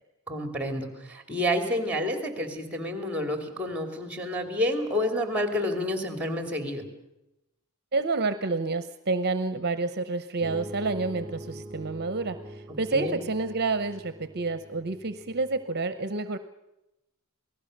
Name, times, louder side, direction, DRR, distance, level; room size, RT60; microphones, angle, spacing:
voice 1, 0.3-6.8 12.9-13.2, left 1 dB, 5° right, 6 dB, 3.0 m, -29 dB
voice 2, 7.9-16.4, right 3 dB, 50° right, 11 dB, 0.8 m, -29 dB
sound 1, 10.4-15.6, right 1 dB, 25° right, 2.4 m, -43 dB
27.5 x 18.5 x 6.6 m, 0.93 s
head